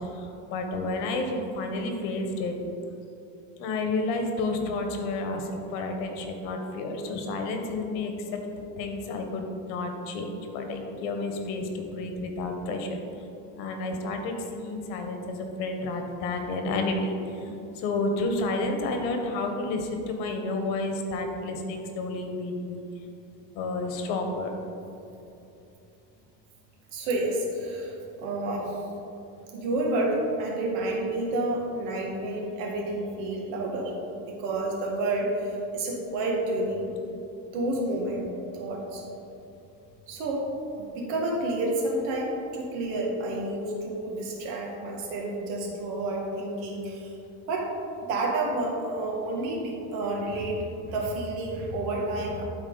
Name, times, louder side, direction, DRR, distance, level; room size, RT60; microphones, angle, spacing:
voice 1, 0.5-2.5 3.6-8.1 8.8-13.0 13.6-17.1 17.4-22.8 23.5-24.5, left 2 dB, 90° left, 4 dB, 1.3 m, -30 dB
voice 2, 26.9-28.8 29.5-36.9 37.5-39.0 40.1-40.5 40.7-47.1 47.5-47.7 48.0-52.4, right 2 dB, 85° right, -1 dB, 1.9 m, -30 dB
12.0 x 4.4 x 4.0 m, 2.9 s
cardioid pair, 150°, 41 cm